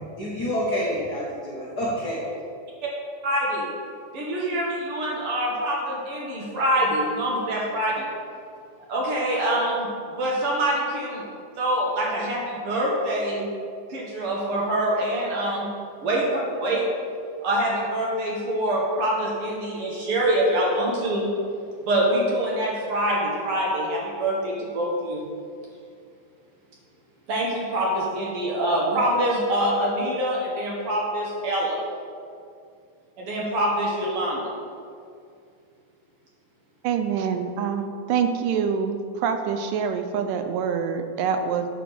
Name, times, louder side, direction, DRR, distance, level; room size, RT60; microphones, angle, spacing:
voice 1, 0.0-2.3, equal, 80° left, -7 dB, 0.9 m, -28 dB
voice 2, 3.2-3.7 4.1-8.0 8.9-13.5 13.9-15.7 16.0-16.8 17.4-21.3 21.8-25.2 27.3-31.8 33.2-34.5, right 1 dB, 60° right, -3 dB, 1.5 m, -25 dB
voice 3, 36.8-41.7, right 7 dB, 90° right, 7 dB, 2.2 m, -25 dB
8.9 x 3.4 x 6.1 m, 2.3 s
omnidirectional pair, 3.8 m